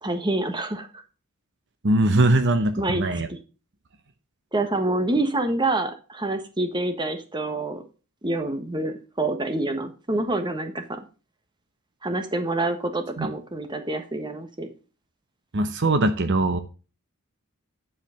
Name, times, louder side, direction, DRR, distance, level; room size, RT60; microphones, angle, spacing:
voice 1, 0.0-0.9 2.8-3.4 4.5-7.8 8.2-11.0 12.0-14.7, right 2 dB, 20° right, 8 dB, 1.4 m, -27 dB
voice 2, 1.8-3.3 13.2-13.3 15.5-16.6, right 2 dB, 55° right, 9 dB, 0.9 m, -21 dB
10.5 x 5.0 x 6.4 m, 0.34 s
head